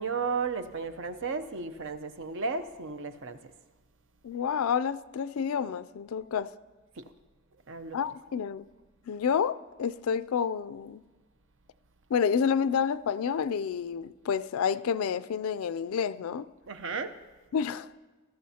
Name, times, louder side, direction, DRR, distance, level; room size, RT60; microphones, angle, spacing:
voice 1, 0.0-3.4 7.0-7.1 7.7-8.0 16.7-17.1, right 4 dB, 60° right, 10 dB, 0.7 m, -34 dB
voice 2, 4.2-6.5 7.9-8.7 9.1-11.0 12.1-16.5 17.5-17.9, left 7 dB, 75° left, 15 dB, 0.4 m, -29 dB
19.5 x 13.5 x 2.8 m, 1.3 s
head